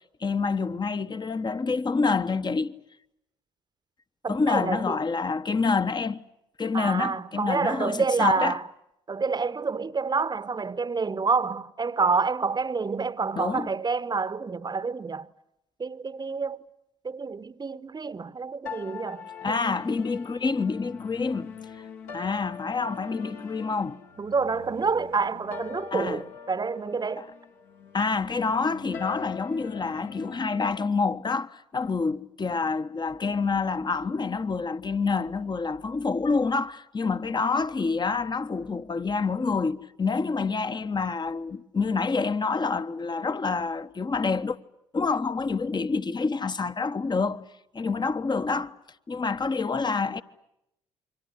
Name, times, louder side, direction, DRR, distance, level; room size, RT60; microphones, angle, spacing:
voice 1, 0.2-2.7 4.3-6.2 6.6-8.6 13.4-13.7 19.4-21.5 22.1-24.0 25.9-26.2 27.2-27.3 27.9-44.6 44.9-47.4 47.7-48.7 49.1-50.2, left 4 dB, 25° left, 1.2 m, -27 dB
voice 2, 4.2-5.0 6.7-8.6 9.1-15.3 15.8-16.6 17.0-19.6 24.2-27.3, right 4 dB, 25° right, 1.1 m, -28 dB
sound 1, 18.7-30.9, left 6 dB, 65° left, 2.6 m, -43 dB
28.5 x 24.0 x 8.3 m
hypercardioid pair, 50°, 16 cm